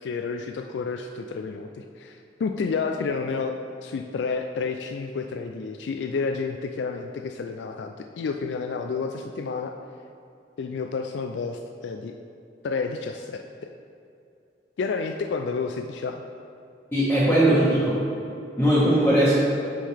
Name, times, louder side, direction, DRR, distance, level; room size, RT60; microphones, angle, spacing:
voice 1, 0.0-3.5 3.8-9.7 10.6-12.2 12.6-13.7 14.8-16.2, left 4 dB, 80° left, 5 dB, 0.3 m, -30 dB
voice 2, 16.9-18.0 18.6-19.3, right 1 dB, 10° left, -12 dB, 1.4 m, -19 dB
8.5 x 5.5 x 3.3 m, 2.6 s
head